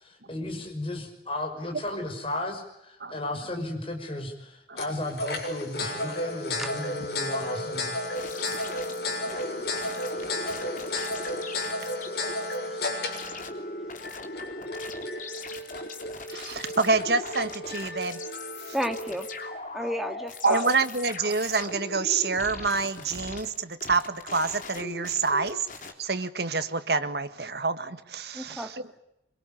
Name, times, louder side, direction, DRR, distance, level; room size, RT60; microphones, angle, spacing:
voice 1, 0.3-7.9, left 1 dB, 30° left, 6.0 m, -34 dB
sound 1, 4.8-19.6, left 1 dB, 65° left, 7.2 m, -33 dB
voice 2, 6.6-6.9 18.7-19.3 19.7-20.7 28.3-28.7, equal, ahead, 2.3 m, -32 dB
sound 2, 8.1-12.6 13.1-25.9, left 2 dB, 50° left, 3.5 m, -40 dB
voice 3, 8.3-8.7 9.2-10.6 11.2-11.3 16.3-18.2 18.7-18.8 20.4-25.7 26.0-28.8, right 4 dB, 70° right, 1.7 m, -28 dB
26.0 x 24.0 x 8.7 m
head